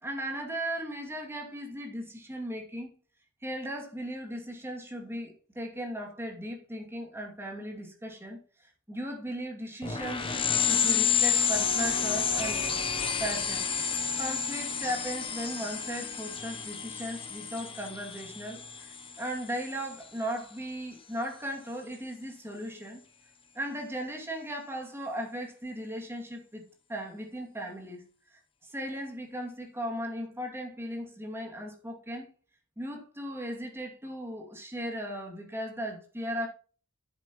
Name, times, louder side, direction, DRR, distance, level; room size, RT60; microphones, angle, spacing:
voice 1, 0.0-2.9 3.4-12.6 13.2-13.7 14.2-23.0 23.5-26.6 26.9-28.0 28.3-32.3 32.8-36.5, equal, 10° right, 2.4 m, -37 dB
sound 1, 9.8-20.0, left 7 dB, 25° left, 0.8 m, -30 dB
10.5 x 8.2 x 3.0 m
head